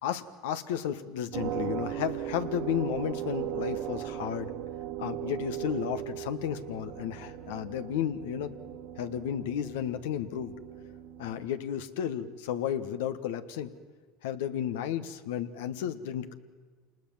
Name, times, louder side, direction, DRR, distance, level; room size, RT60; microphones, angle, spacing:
voice 1, 0.0-4.5 5.0-8.5 9.0-10.5 11.2-13.7 14.2-16.3, left 9 dB, 80° left, 10 dB, 1.4 m, -33 dB
sound 1, 1.3-11.5, right 12 dB, 60° right, 1.8 m, -38 dB
27.0 x 20.0 x 7.4 m, 1.5 s
supercardioid pair, 105°, 0 cm